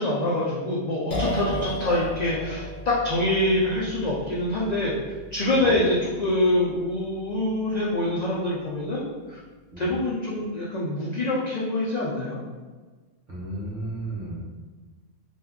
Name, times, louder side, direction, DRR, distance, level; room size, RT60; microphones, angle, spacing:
voice 1, 0.0-4.9 5.3-9.0 9.3-9.4 9.8-12.4, left 1 dB, 80° left, -5 dB, 0.3 m, -25 dB
sound 1, 1.1-8.7, equal, 45° left, 0.6 m, -35 dB
voice 2, 13.3-14.4, right 2 dB, 45° right, -6 dB, 0.8 m, -33 dB
2.5 x 2.2 x 3.4 m, 1.4 s
omnidirectional pair, 1.3 m